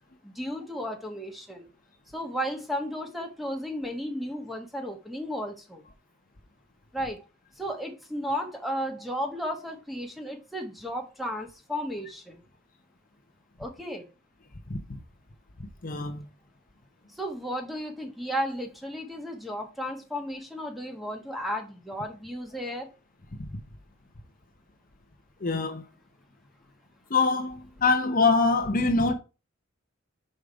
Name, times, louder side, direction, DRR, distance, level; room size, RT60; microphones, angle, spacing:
voice 1, 0.2-1.7 2.1-5.8 6.9-7.2 7.6-12.4 13.6-14.1 17.1-22.9, equal, ahead, 1.3 m, -34 dB
voice 2, 15.8-16.2 23.4-23.5 25.4-25.8 27.1-29.1, left 3 dB, 45° left, 0.8 m, -24 dB
5.6 x 5.0 x 4.7 m
head